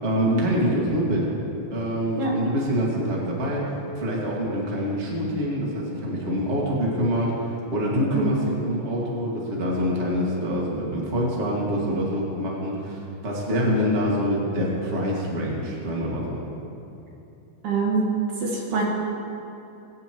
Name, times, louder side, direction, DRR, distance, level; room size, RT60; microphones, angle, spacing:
voice 1, 0.0-1.3 1.7-16.4, equal, 25° right, -4 dB, 1.7 m, -25 dB
voice 2, 17.6-18.0 18.4-18.8, right 4 dB, 65° right, -3 dB, 2.9 m, -24 dB
21.5 x 9.9 x 3.1 m, 2.9 s
omnidirectional pair, 3.9 m